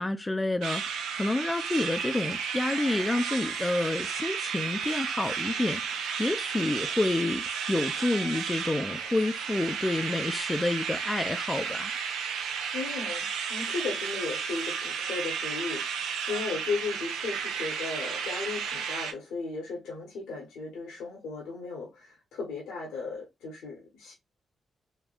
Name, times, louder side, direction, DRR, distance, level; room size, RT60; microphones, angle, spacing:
voice 1, 0.0-12.0, left 2 dB, 20° left, 0.4 m, -29 dB
sound 1, 0.6-19.1, right 6 dB, 90° right, 0.4 m, -33 dB
voice 2, 12.7-24.1, left 4 dB, 85° left, 1.0 m, -36 dB
3.3 x 2.2 x 2.3 m
supercardioid pair, 55°, 0 cm